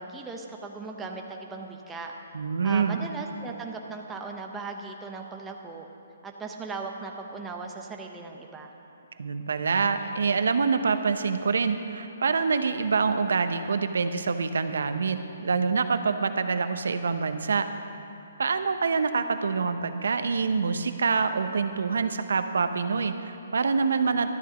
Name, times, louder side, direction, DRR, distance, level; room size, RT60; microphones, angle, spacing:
voice 1, 0.0-2.1 2.6-5.9 6.2-8.8, right 4 dB, 5° right, 1 dB, 0.6 m, -38 dB
voice 2, 2.3-3.0 9.2-17.7 18.4-24.3, right 5 dB, 75° right, 9 dB, 0.9 m, -26 dB
13.0 x 12.5 x 5.1 m, 2.9 s
hypercardioid pair, 180°, 0 cm